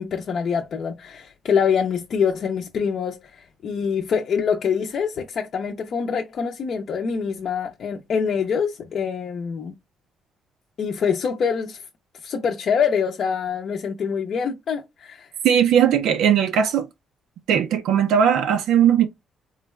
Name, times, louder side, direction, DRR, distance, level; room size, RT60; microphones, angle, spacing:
voice 1, 0.0-9.7 10.8-11.8 12.2-15.3, left 6 dB, 50° left, 0.5 m, -25 dB
voice 2, 15.4-16.9 17.5-19.1, right 8 dB, 90° right, 0.5 m, -18 dB
3.8 x 2.2 x 3.1 m
cardioid pair, 145°, 0 cm